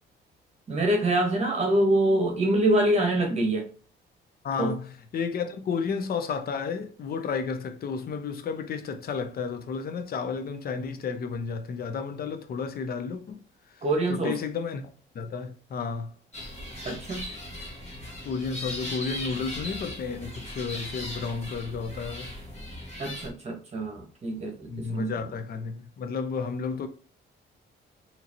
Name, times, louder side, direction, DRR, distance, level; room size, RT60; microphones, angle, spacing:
voice 1, 0.7-3.6 4.6-4.7 13.8-14.3 16.8-17.2 23.0-25.1, right 1 dB, 35° right, 1.1 m, -25 dB
voice 2, 4.4-13.4 13.7-16.1 18.2-22.3 24.7-26.9, left 5 dB, 50° left, 0.6 m, -32 dB
sound 1, 16.3-23.3, left 1 dB, 35° left, 1.8 m, -38 dB
3.8 x 2.9 x 2.9 m
cardioid pair, 90°, 20 cm